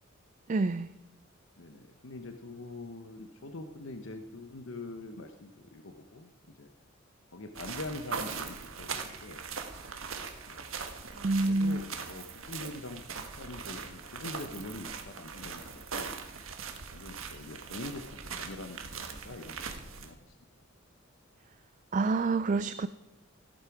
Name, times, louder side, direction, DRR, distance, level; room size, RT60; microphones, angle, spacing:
voice 1, 0.5-0.9 11.1-11.8 21.9-22.9, right 3 dB, 40° right, 13 dB, 0.4 m, -27 dB
voice 2, 1.6-6.7 7.3-9.5 10.5-10.7 11.5-16.4 16.9-20.3, left 2 dB, 75° left, 6 dB, 1.0 m, -44 dB
sound 1, 7.5-20.1, right 5 dB, 90° right, 1.5 m, -41 dB
15.0 x 13.0 x 4.8 m, 1.0 s
head